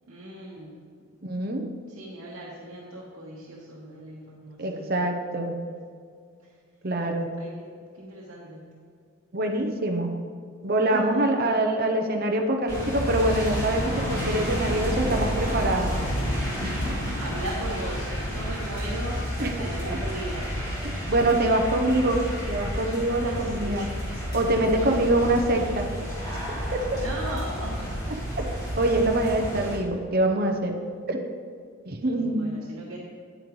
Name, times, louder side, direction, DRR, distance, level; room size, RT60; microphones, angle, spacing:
voice 1, 0.1-0.8 1.9-5.1 6.4-6.5 7.4-8.7 10.9-11.2 17.2-19.2 19.6-20.5 23.0-23.7 24.7-25.3 26.9-28.0 32.1-33.0, right 1 dB, 70° right, -6 dB, 1.2 m, -38 dB
voice 2, 1.2-1.6 4.6-5.6 6.8-7.3 9.3-10.2 10.6-15.9 16.6-17.0 19.4-19.5 19.9-20.0 21.1-22.2 22.5-23.9 24.3-25.9 26.5-27.0 28.4-28.5 28.8-30.8 31.1-31.2 31.8-32.4, right 1 dB, 45° right, 3 dB, 0.7 m, -25 dB
sound 1, 12.7-29.8, equal, 15° left, 2.1 m, -30 dB
9.1 x 8.9 x 3.1 m, 2.2 s
head